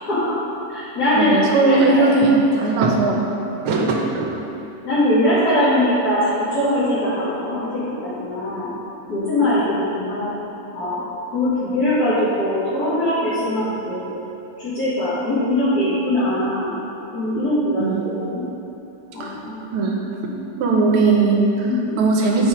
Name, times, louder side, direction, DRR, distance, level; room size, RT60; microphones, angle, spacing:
voice 1, 0.1-0.4 0.7-2.1 3.7-3.9 4.8-8.7 9.1-10.3 10.7-11.0 11.3-14.1 14.6-16.7 17.1-18.4 19.1-19.6 21.6-22.0, left 1 dB, 50° left, -12 dB, 2.1 m, -21 dB
voice 2, 1.1-3.2 3.6-4.3 17.8-18.1 19.2-19.3 19.7-20.3 20.6-21.7 22.0-22.5, right 3 dB, 80° right, 0 dB, 1.8 m, -18 dB
9.0 x 5.0 x 4.9 m, 3.0 s
omnidirectional pair, 2.4 m